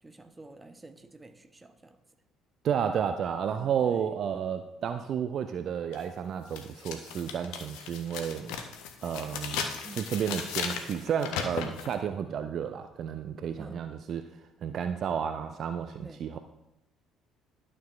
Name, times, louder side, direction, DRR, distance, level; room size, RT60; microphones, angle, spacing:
voice 1, 0.0-2.0 3.4-4.1 9.8-10.1 13.6-13.8 16.0-16.2, right 2 dB, 20° right, 8 dB, 0.7 m, -49 dB
voice 2, 2.6-8.5 9.0-9.7 9.9-14.3 14.6-16.4, right 8 dB, 50° right, 9 dB, 0.3 m, -32 dB
sound 1, 5.9-6.0 6.5-11.9, left 6 dB, 65° left, 0.7 m, -36 dB
12.0 x 6.6 x 2.4 m, 0.92 s
figure-of-eight pair, 50°, 0 cm